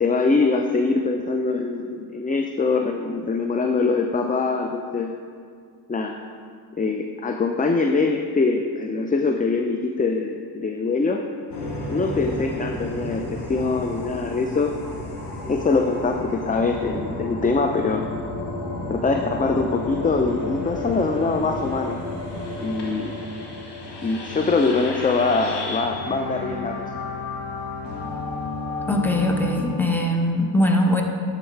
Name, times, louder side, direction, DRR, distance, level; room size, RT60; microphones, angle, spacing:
voice 1, 0.0-5.1 5.9-6.2 6.8-11.2 11.9-14.7 15.5-18.0 18.9-22.0 22.6-23.1 24.0-26.9, left 3 dB, 20° left, 4 dB, 0.5 m, -23 dB
sound 1, 11.5-29.7, left 2 dB, 85° left, 1.4 m, -32 dB
voice 2, 28.9-31.0, left 1 dB, 5° left, 2 dB, 1.1 m, -21 dB
11.0 x 4.0 x 4.6 m, 2.1 s
cardioid pair, 55°, 40 cm